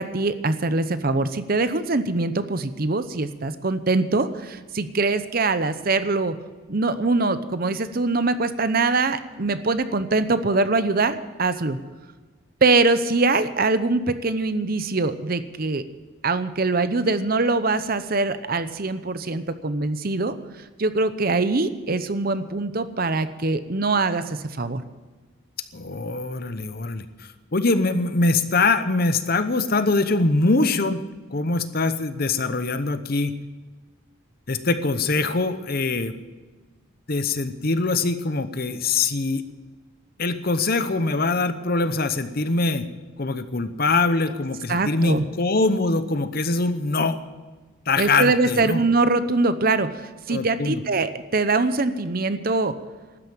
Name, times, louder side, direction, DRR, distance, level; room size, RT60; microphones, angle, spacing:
voice 1, 0.0-6.3 6.7-11.8 12.6-15.8 16.2-20.4 20.8-24.8 44.7-45.3 48.0-52.7, right 3 dB, 45° right, 12 dB, 0.8 m, -23 dB
voice 2, 25.7-31.0 31.3-33.4 34.5-36.2 37.1-39.4 40.2-42.8 43.2-47.2 47.9-48.8 50.3-50.8, left 3 dB, 45° left, 11 dB, 0.9 m, -23 dB
13.0 x 9.6 x 8.9 m, 1.3 s
head